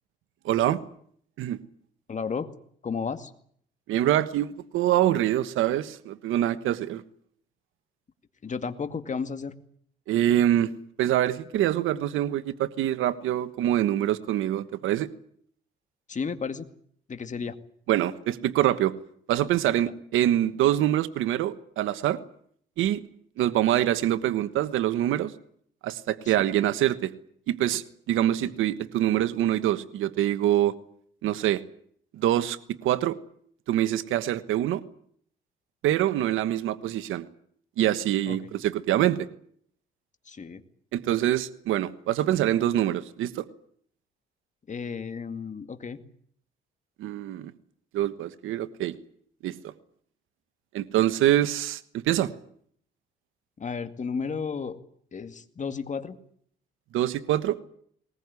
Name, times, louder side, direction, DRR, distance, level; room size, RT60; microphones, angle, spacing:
voice 1, 0.4-0.8 1.4-1.6 3.9-7.0 10.1-10.7 11.0-15.1 17.9-18.9 19.3-22.2 22.8-23.0 23.4-25.3 25.8-27.1 27.5-30.7 31.2-31.6 32.1-33.2 33.7-34.8 35.8-37.3 37.8-39.3 40.9-43.5 47.0-47.5 47.9-49.0 49.4-49.7 50.7-52.3 56.9-57.6, right 12 dB, 85° right, 13 dB, 1.3 m, -25 dB
voice 2, 2.1-2.5 2.8-3.3 8.4-9.6 16.1-16.7 17.1-17.6 23.6-23.7 26.4-26.5 28.4-28.5 38.3-38.4 40.3-40.6 44.7-46.0 53.6-54.8 55.1-56.2, left 5 dB, 40° left, 9 dB, 2.2 m, -33 dB
20.5 x 20.0 x 9.7 m, 0.64 s
cardioid pair, 90°, 20 cm